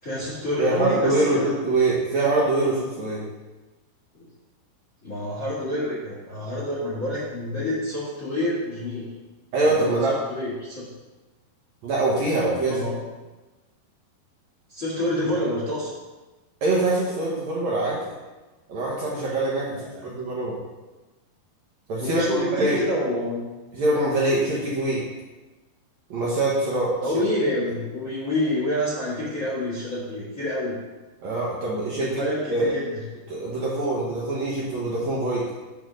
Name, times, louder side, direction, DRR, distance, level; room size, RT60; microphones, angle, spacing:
voice 1, 0.0-1.5 4.1-4.3 5.0-9.1 9.7-10.9 12.7-12.9 14.7-15.9 19.7-20.1 22.0-23.4 27.0-30.8 31.9-33.0, left 1 dB, 35° left, -7 dB, 1.3 m, -28 dB
voice 2, 0.6-3.2 9.5-10.1 11.8-12.9 16.6-18.1 18.7-19.8 20.0-20.6 21.9-22.8 23.7-25.0 26.1-26.9 31.2-32.2 32.5-32.7 33.3-35.5, right 2 dB, 70° right, -6 dB, 1.7 m, -24 dB
8.6 x 3.5 x 6.2 m, 1.2 s
omnidirectional pair, 4.8 m